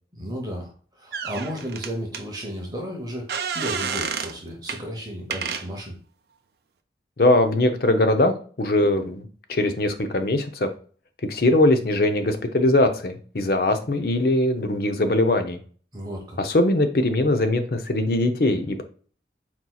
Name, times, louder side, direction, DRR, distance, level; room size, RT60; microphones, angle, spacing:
voice 1, 0.1-0.7 1.0-5.9 15.9-16.4, equal, 20° right, 0 dB, 0.9 m, -33 dB
sound 1, 1.1-2.2 3.3-4.4 4.7-4.8 5.3-5.7, right 6 dB, 60° right, 0.4 m, -29 dB
voice 2, 7.2-10.7 11.3-15.6 16.4-18.8, left 1 dB, 55° left, 7 dB, 0.6 m, -21 dB
4.4 x 4.1 x 2.3 m, 0.42 s
head